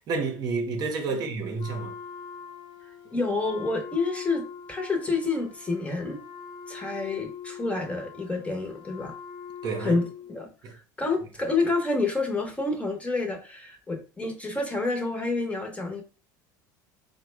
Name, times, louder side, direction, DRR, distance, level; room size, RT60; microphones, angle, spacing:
voice 1, 0.1-1.9 9.6-10.0 10.6-10.7, right 4 dB, 45° right, 0.8 m, -30 dB
Wind instrument woodwind instrument, 1.6-10.4, left 7 dB, 45° left, 0.8 m, -43 dB
voice 2, 3.1-6.2 6.7-9.1 9.8-10.0 10.3-16.0, left 3 dB, 15° left, 0.8 m, -28 dB
3.6 x 2.1 x 3.2 m
supercardioid pair, 105°, 10 cm